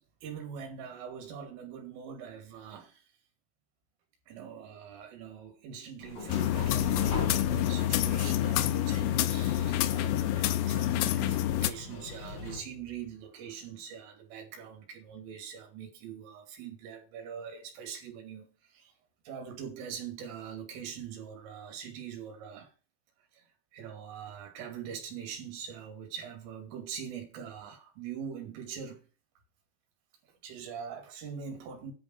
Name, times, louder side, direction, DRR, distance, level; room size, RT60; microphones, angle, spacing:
voice 1, 0.2-3.0 4.3-18.5 18.7-18.9 19.3-22.7 23.3-23.5 23.7-29.0 30.3-31.9, right 7 dB, 70° right, 5.2 m, -43 dB
sound 1, 6.0-12.6, left 4 dB, 35° left, 6.9 m, -40 dB
sound 2, 6.3-11.7, left 13 dB, 90° left, 2.6 m, -28 dB
10.5 x 7.3 x 4.7 m
omnidirectional pair, 6.0 m